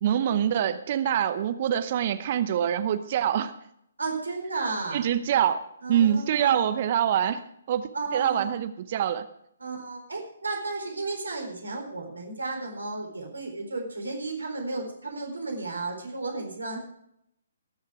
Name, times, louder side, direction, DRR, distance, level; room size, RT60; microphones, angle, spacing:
voice 1, 0.0-3.5 4.9-5.6 5.9-7.4 7.7-9.3, right 10 dB, 40° right, 12 dB, 0.8 m, -25 dB
voice 2, 4.0-5.0 5.8-6.7 7.9-8.6 9.6-16.8, right 3 dB, 75° right, 2 dB, 4.1 m, -33 dB
21.0 x 7.2 x 4.9 m, 0.74 s
figure-of-eight pair, 130°, 0 cm